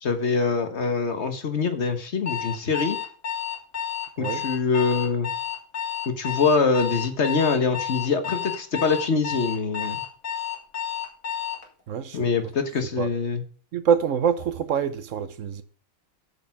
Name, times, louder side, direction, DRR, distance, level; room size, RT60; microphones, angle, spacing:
voice 1, 0.0-3.0 4.2-5.3 6.1-10.0 12.1-13.4, left 4 dB, 55° left, 1.5 m, -24 dB
Alarm, 2.3-11.7, left 9 dB, 85° left, 2.3 m, -31 dB
voice 2, 11.9-12.3 13.0-13.1 13.7-15.6, right 7 dB, 70° right, 1.1 m, -25 dB
8.0 x 6.6 x 5.8 m
omnidirectional pair, 1.4 m